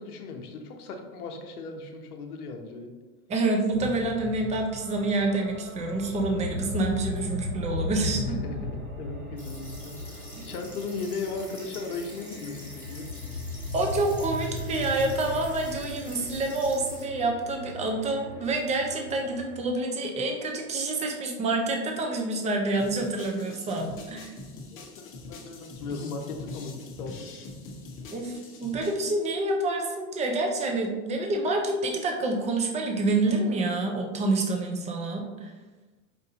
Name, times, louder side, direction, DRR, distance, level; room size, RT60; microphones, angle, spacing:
voice 1, 0.0-2.9 8.0-13.1 24.5-27.3, left 4 dB, 85° left, 4 dB, 0.7 m, -37 dB
voice 2, 3.3-8.4 10.3-10.4 13.7-24.3 28.1-35.5, right 2 dB, 15° right, 2 dB, 0.4 m, -27 dB
sound 1, 3.7-19.7, left 2 dB, 85° right, 1.4 m, -37 dB
sound 2, 9.4-17.0, left 1 dB, 5° left, 1.4 m, -47 dB
sound 3, 22.8-29.0, left 3 dB, 30° left, 0.7 m, -43 dB
5.0 x 2.5 x 2.7 m, 1.2 s
hypercardioid pair, 115°, 44 cm